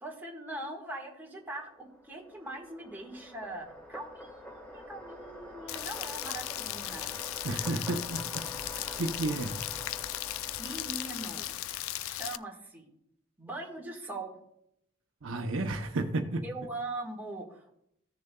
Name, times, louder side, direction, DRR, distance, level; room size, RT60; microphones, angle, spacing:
voice 1, 0.0-7.1 10.6-11.5 12.0-12.9 13.4-14.4 16.4-17.7, right 2 dB, 10° right, -1 dB, 1.6 m, -41 dB
sound 1, 1.5-12.2, equal, 5° left, 1.5 m, -47 dB
Rain, 5.7-12.4, left 14 dB, 85° left, 0.3 m, -37 dB
voice 2, 7.4-8.5 8.7-9.6 15.2-16.4, right 2 dB, 70° right, 5 dB, 0.8 m, -32 dB
15.5 x 6.7 x 2.3 m, 0.76 s
head